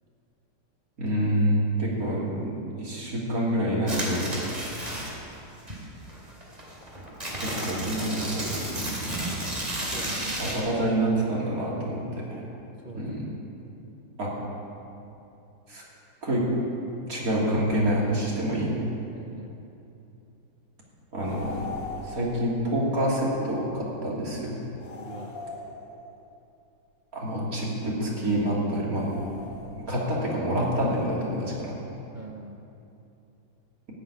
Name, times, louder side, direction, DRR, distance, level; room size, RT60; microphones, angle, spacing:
voice 1, 1.0-4.3 7.4-8.5 10.4-12.4 12.9-13.2 14.2-14.3 15.7-15.8 16.2-16.4 17.1-18.8 21.1-21.5 22.1-24.6 27.1-29.1 29.7-31.7, right 1 dB, 45° right, -5 dB, 3.3 m, -27 dB
sound 1, 3.9-5.3 5.7-10.6, right 1 dB, 20° right, 2.7 m, -32 dB
voice 2, 9.8-10.4 12.8-13.1 19.1-19.5 24.9-25.4 32.1-32.6, right 3 dB, 75° right, 1 dB, 0.4 m, -43 dB
sound 2, 21.2-22.5 24.8-26.2 28.9-30.0, left 3 dB, 65° left, 1.9 m, -40 dB
14.5 x 7.8 x 9.8 m, 2.8 s
omnidirectional pair, 2.2 m